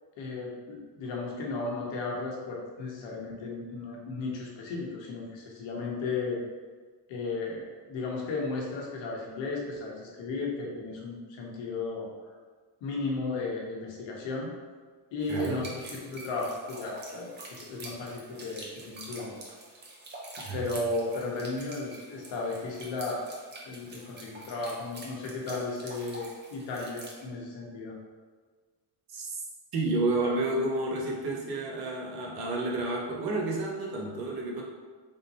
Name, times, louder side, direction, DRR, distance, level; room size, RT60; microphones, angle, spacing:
voice 1, 0.2-6.4 7.1-12.1 12.8-14.5 15.1-19.3 20.5-23.3 23.6-27.9, left 3 dB, 70° left, -2 dB, 1.0 m, -35 dB
sound 1, 15.2-27.2, right 1 dB, 25° right, 0.6 m, -46 dB
voice 2, 15.3-15.7 20.4-20.6 29.1-29.3 29.7-34.6, right 2 dB, 50° right, -2 dB, 0.9 m, -30 dB
3.7 x 2.7 x 4.1 m, 1.5 s
cardioid pair, 165°, 46 cm